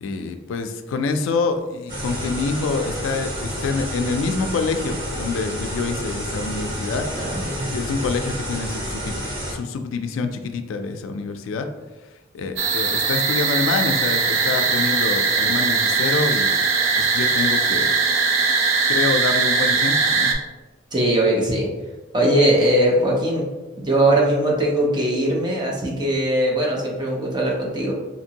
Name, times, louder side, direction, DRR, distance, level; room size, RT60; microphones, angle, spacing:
voice 1, 0.0-7.0 7.6-9.1 9.5-11.7 12.3-16.5 16.9-17.9 18.9-20.3, left 4 dB, 85° left, 7 dB, 0.3 m, -26 dB
sound 1, 1.9-9.5, equal, 50° right, 1.3 m, -29 dB
voice 2, 7.1-7.6 20.9-21.7 22.1-23.5 23.8-27.9, right 1 dB, 20° right, -2 dB, 0.6 m, -20 dB
sound 2, 12.6-20.3, right 4 dB, 85° right, 0.4 m, -20 dB
2.8 x 2.6 x 2.8 m, 1.2 s
head